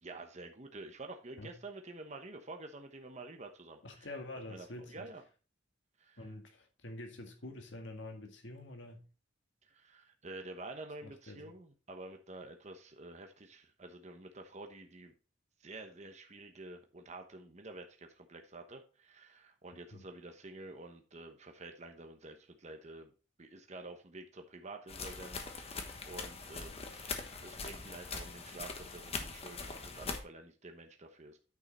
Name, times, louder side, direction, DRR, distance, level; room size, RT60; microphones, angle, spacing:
voice 1, 0.0-3.8 4.5-5.2 6.0-6.3 9.6-15.1 15.6-23.1 23.4-31.4, right 2 dB, 35° right, 1.0 m, -49 dB
voice 2, 3.8-5.1 6.2-9.1 11.0-11.5 19.9-20.0, left 1 dB, 65° left, 1.9 m, -47 dB
sound 1, 24.9-30.2, left 4 dB, 30° left, 1.1 m, -42 dB
9.5 x 5.7 x 4.2 m
head